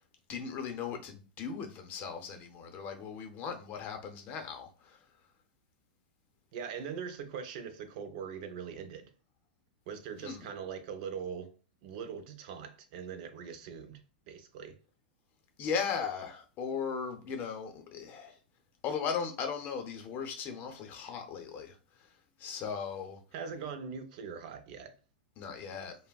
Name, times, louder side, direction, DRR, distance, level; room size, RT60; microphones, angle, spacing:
voice 1, 0.3-5.0 10.2-10.5 15.6-18.3 18.8-21.7 22.4-23.2 25.4-26.0, left 6 dB, 35° left, 0.6 m, -37 dB
voice 2, 6.5-9.1 9.9-11.5 11.8-14.0 14.3-14.7 23.3-24.9, right 6 dB, 60° right, 0.5 m, -41 dB
3.3 x 2.0 x 2.2 m
hypercardioid pair, 125°, 5 cm